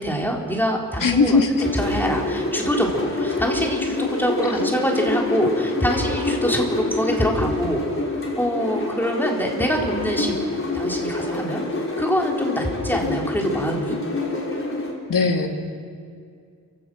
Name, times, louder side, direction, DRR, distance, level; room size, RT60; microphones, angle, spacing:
voice 1, 0.0-1.4 1.7-7.8 8.4-11.6 12.0-13.9, equal, 5° left, 0 dB, 4.5 m, -24 dB
voice 2, 1.0-1.5 15.1-15.5, left 4 dB, 70° left, 4 dB, 2.5 m, -18 dB
sound 1, 1.6-14.9, left 2 dB, 40° left, 5.4 m, -26 dB
29.0 x 17.0 x 6.5 m, 2.3 s
cardioid pair, 55°, 34 cm